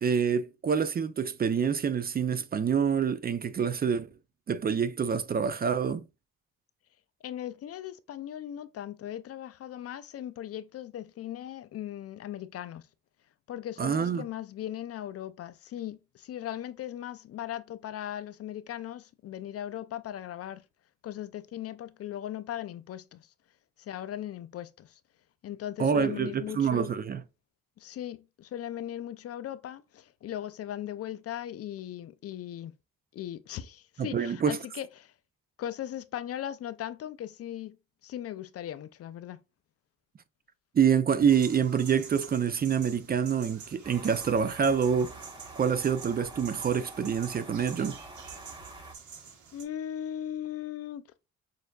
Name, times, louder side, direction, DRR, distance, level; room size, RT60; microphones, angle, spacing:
voice 1, 0.0-4.1 4.5-6.0 13.8-14.2 25.8-27.2 34.0-34.6 40.7-45.2 45.6-48.0, right 7 dB, 30° right, 0.4 m, -26 dB
voice 2, 7.2-12.8 13.5-20.6 21.0-23.3 23.8-25.0 25.4-26.9 27.8-32.7 33.1-35.1 35.6-37.8 38.0-39.4 49.5-51.0, left 11 dB, 50° left, 0.4 m, -38 dB
sound 1, 41.3-49.6, right 6 dB, 75° right, 1.4 m, -48 dB
sound 2, 43.8-49.0, right 2 dB, 15° right, 0.8 m, -47 dB
6.4 x 2.6 x 2.2 m
cardioid pair, 90°, 30 cm